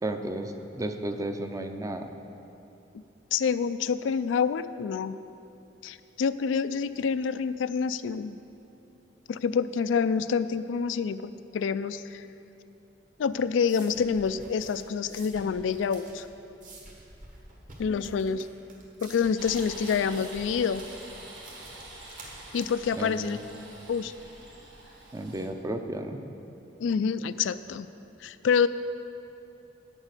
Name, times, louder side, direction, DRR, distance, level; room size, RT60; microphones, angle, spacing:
voice 1, 0.0-2.1 23.0-23.4 25.1-26.3, right 1 dB, 20° right, 6 dB, 0.5 m, -33 dB
voice 2, 3.3-5.1 5.8-8.4 9.3-12.3 13.2-16.3 17.8-18.5 19.0-20.8 22.5-23.4 23.9-24.1 26.8-27.9 28.2-28.7, left 6 dB, 90° left, 13 dB, 0.3 m, -27 dB
sound 1, 13.1-24.5, right 2 dB, 45° right, 1.7 m, -49 dB
sound 2, 19.4-25.5, right 2 dB, 70° right, 1.6 m, -46 dB
9.1 x 7.2 x 6.6 m, 2.9 s
head